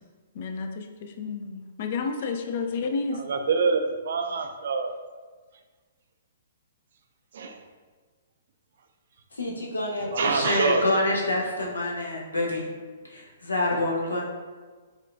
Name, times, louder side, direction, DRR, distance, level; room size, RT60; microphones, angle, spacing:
voice 1, 0.4-3.2, left 4 dB, 50° left, 6 dB, 0.3 m, -31 dB
voice 2, 3.1-4.9 7.3-7.6 10.1-10.8, right 4 dB, 60° right, 6 dB, 0.3 m, -26 dB
voice 3, 9.3-12.7 13.0-14.2, left 1 dB, 80° left, -2 dB, 0.7 m, -27 dB
4.3 x 2.3 x 2.4 m, 1.4 s
figure-of-eight pair, 120°, 0 cm